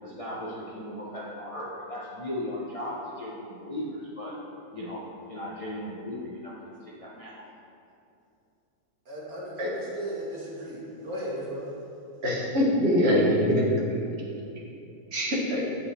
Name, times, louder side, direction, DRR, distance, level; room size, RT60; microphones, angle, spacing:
voice 1, 0.0-4.4 4.7-7.5, left 1 dB, 35° left, -6 dB, 0.6 m, -37 dB
voice 2, 9.1-11.7, right 1 dB, 65° right, -6 dB, 2.1 m, -36 dB
voice 3, 12.2-13.6 13.9-14.0 15.1-15.7, equal, 45° right, -3 dB, 1.5 m, -23 dB
8.3 x 5.3 x 4.2 m, 2.7 s
omnidirectional pair, 1.6 m